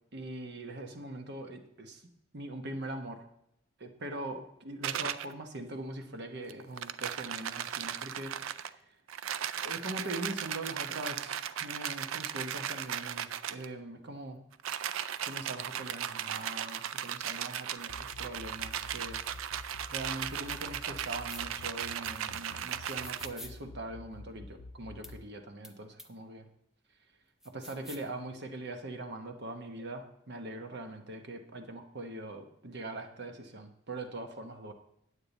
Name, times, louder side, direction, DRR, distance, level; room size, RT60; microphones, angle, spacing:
voice 1, 0.1-2.1 2.3-3.2 3.8-9.0 9.6-14.4 15.2-19.2 19.9-26.5 27.4-34.7, right 2 dB, 55° right, 6 dB, 1.0 m, -42 dB
sound 1, 4.8-5.3 6.5-8.7 9.1-13.7 14.5-23.3, right 10 dB, 75° right, 0.4 m, -37 dB
sound 2, 17.9-25.2, left 3 dB, 80° left, 0.6 m, -48 dB
sound 3, 21.3-21.4 22.8-23.5 25.0-25.1 25.6-25.7 26.0-26.1 27.4-28.1, left 1 dB, ahead, 0.5 m, -47 dB
8.8 x 8.6 x 4.0 m, 0.77 s
head